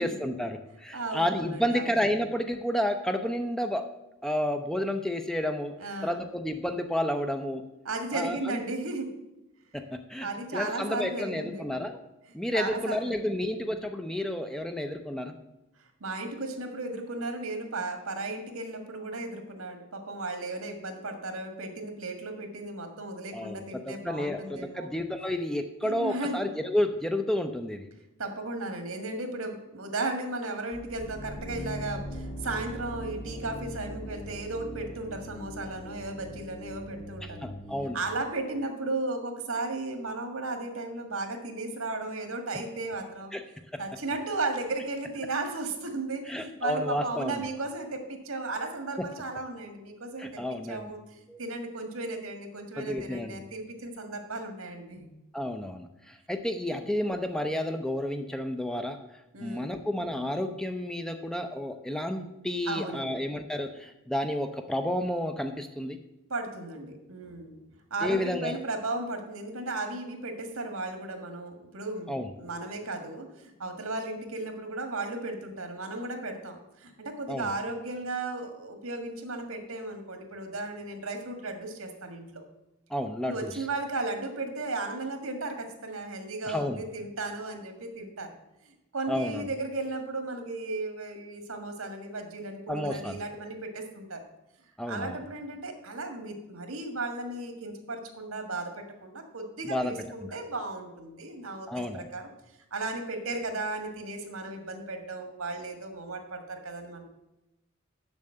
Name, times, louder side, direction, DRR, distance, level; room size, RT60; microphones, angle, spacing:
voice 1, 0.0-3.9 4.2-5.7 6.0-7.6 8.1-8.6 9.7-10.3 10.5-12.0 12.3-15.3 23.3-27.9 37.2-38.0 43.3-43.4 43.7-43.8 46.3-47.4 50.2-50.9 51.3-51.4 52.8-53.4 55.3-59.0 59.4-66.0 68.0-68.6 72.1-72.3 77.3-77.5 82.9-83.5 86.5-86.8 89.1-89.5 92.7-93.2 94.8-95.2 99.6-99.9 101.7-102.1, left 1 dB, 5° left, 6 dB, 0.5 m, -31 dB
voice 2, 0.9-1.9 5.8-6.2 7.8-9.2 10.2-11.8 12.5-13.3 15.8-24.9 25.8-26.4 28.2-37.4 37.9-43.3 43.8-50.4 50.7-55.1 56.7-56.8 59.3-59.7 62.7-63.2 66.3-67.6 67.9-82.4 83.2-88.3 88.6-94.2 94.9-102.3 102.7-107.0, right 2 dB, 85° right, 5 dB, 1.7 m, -35 dB
sound 1, 30.7-38.6, equal, 40° left, 1.3 m, -41 dB
7.1 x 6.6 x 7.8 m, 0.94 s
head